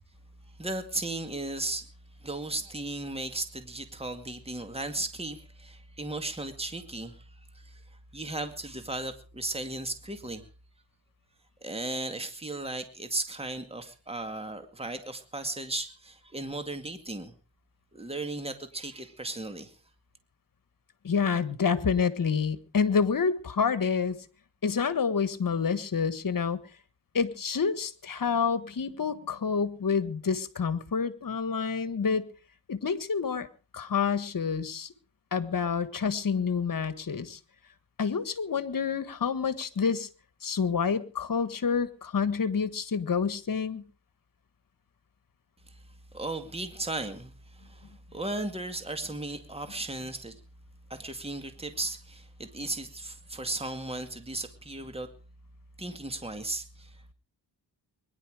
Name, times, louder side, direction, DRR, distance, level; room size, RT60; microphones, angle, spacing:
voice 1, 0.6-1.9 2.2-7.3 7.5-7.8 8.1-10.4 11.6-17.3 17.9-19.8 45.7-45.8 46.1-50.4 50.9-55.1 55.8-57.1, right 2 dB, 15° right, 8 dB, 2.1 m, -36 dB
voice 2, 21.0-24.2 24.6-26.6 27.1-32.3 32.7-33.5 33.7-34.9 35.3-37.4 38.0-40.1 40.4-43.9, left 6 dB, 50° left, 14 dB, 1.6 m, -28 dB
22.0 x 11.0 x 4.9 m, 0.38 s
cardioid pair, 85°, 43 cm